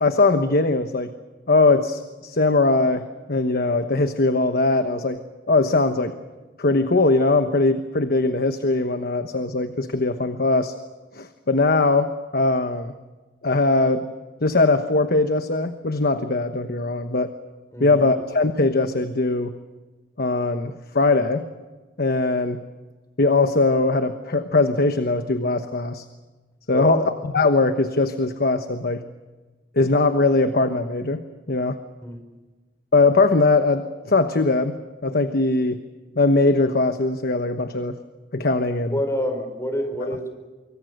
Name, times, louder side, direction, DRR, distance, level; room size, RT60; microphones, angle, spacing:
voice 1, 0.0-1.1 1.5-6.1 6.6-10.7 11.1-12.9 13.4-14.1 14.4-17.3 17.8-19.5 20.2-21.5 22.0-22.6 23.2-26.0 26.7-29.0 29.8-31.8 32.9-35.8 36.2-38.0 38.3-39.0, left 3 dB, 55° left, 8 dB, 1.1 m, -21 dB
voice 2, 17.7-18.0 26.7-27.0 32.0-32.2 38.9-40.3, equal, 15° left, 6 dB, 4.8 m, -27 dB
25.5 x 24.0 x 6.6 m, 1.3 s
head